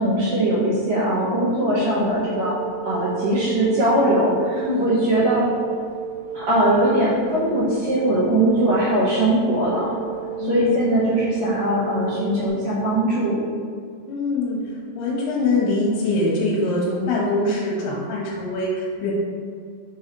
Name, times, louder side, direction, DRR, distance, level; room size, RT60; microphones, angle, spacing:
voice 1, 0.0-2.6 2.8-5.4 6.3-9.9 10.4-13.4, right 1 dB, 75° right, -8 dB, 1.6 m, -20 dB
sound 1, 1.7-12.5, right 9 dB, 60° left, 1.6 m, -33 dB
voice 2, 4.5-4.9 10.4-11.0 14.1-14.6 15.0-19.1, left 2 dB, 75° left, -4 dB, 2.8 m, -23 dB
6.2 x 5.4 x 3.0 m, 2.1 s
omnidirectional pair, 4.7 m